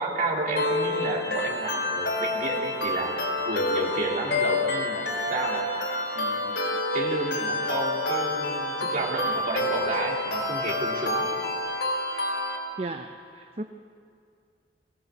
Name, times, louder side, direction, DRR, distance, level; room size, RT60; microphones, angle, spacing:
voice 1, 0.0-3.1 3.4-5.7 6.1-6.6 6.9-11.3, right 2 dB, 50° right, -1 dB, 3.1 m, -31 dB
sound 1, 0.6-12.6, left 2 dB, 70° left, 3.5 m, -28 dB
voice 2, 12.8-13.6, right 2 dB, 35° right, 6 dB, 0.7 m, -35 dB
20.5 x 17.0 x 8.2 m, 2.3 s
head